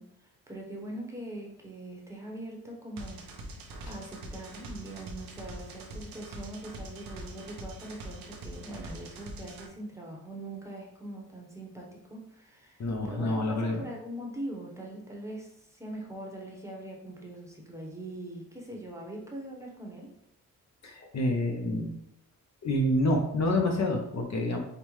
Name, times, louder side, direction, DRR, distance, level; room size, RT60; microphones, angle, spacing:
voice 1, 0.0-3.3 3.6-20.1, right 1 dB, 10° right, -2 dB, 0.9 m, -42 dB
sound 1, 3.0-9.7, right 1 dB, 90° right, 0.7 m, -43 dB
voice 2, 12.8-13.8 20.8-21.9 22.6-24.6, left 1 dB, 50° left, 2 dB, 0.8 m, -27 dB
5.2 x 2.1 x 3.1 m, 0.77 s
cardioid pair, 80°, 34 cm